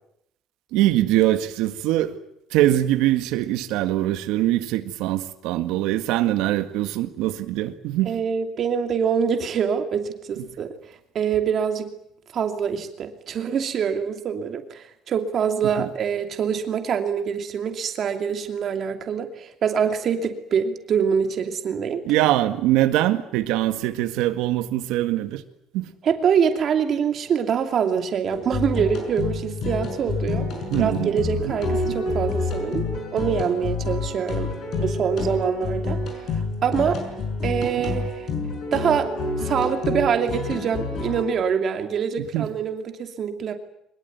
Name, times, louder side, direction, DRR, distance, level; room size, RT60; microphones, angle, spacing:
voice 1, 0.7-2.2 2.5-8.2 15.8-15.9 22.1-25.4 25.7-25.9 30.7-31.1 31.4-32.0 42.2-42.5, right 14 dB, 85° right, 9 dB, 1.8 m, -23 dB
voice 2, 8.1-10.7 11.1-11.9 12.3-22.0 26.0-30.5 30.8-32.8 33.1-34.5 34.8-37.0 37.4-38.3 38.7-43.5, right 7 dB, 35° right, 6 dB, 2.7 m, -25 dB
sound 1, 28.3-41.2, left 3 dB, 40° left, 6.3 m, -28 dB
23.5 x 21.5 x 9.4 m, 0.76 s
cardioid pair, 180°, 0 cm